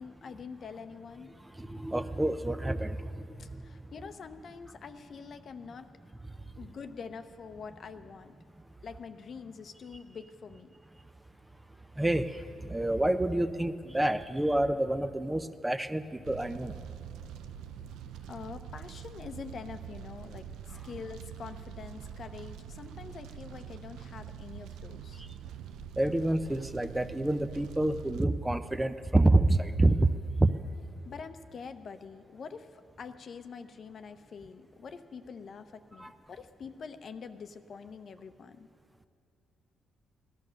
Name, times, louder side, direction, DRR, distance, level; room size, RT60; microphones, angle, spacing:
voice 1, 0.0-1.3 3.4-5.9 6.5-8.3 8.8-10.7 18.3-25.2 31.0-38.7, left 5 dB, 50° left, 9 dB, 0.8 m, -45 dB
voice 2, 1.6-3.1 12.0-12.4 12.7-16.7 26.0-30.1 30.4-30.5 36.0-36.1, right 1 dB, 10° right, 10 dB, 0.5 m, -27 dB
Fire, 16.3-28.2, right 9 dB, 85° right, 0.4 m, -45 dB
17.0 x 11.5 x 6.5 m, 2.4 s
cardioid pair, 90°, 0 cm